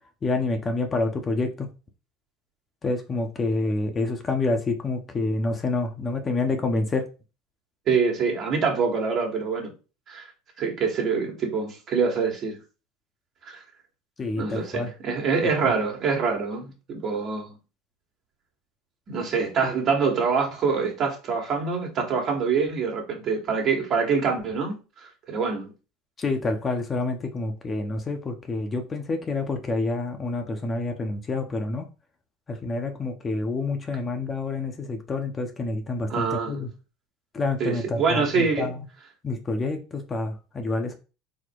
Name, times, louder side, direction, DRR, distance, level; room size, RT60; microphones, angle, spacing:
voice 1, 0.2-1.7 2.8-7.1 14.2-14.9 15.6-15.7 26.2-31.9 32.5-36.7 37.3-38.8 39.2-41.0, left 3 dB, 30° left, 0.8 m, -28 dB
voice 2, 7.9-9.7 10.1-10.3 10.6-12.6 13.5-13.6 14.3-17.6 19.1-25.7 36.1-36.7 37.6-38.7, right 5 dB, 45° right, 1.5 m, -25 dB
4.2 x 2.1 x 4.6 m
hypercardioid pair, 85°, 0 cm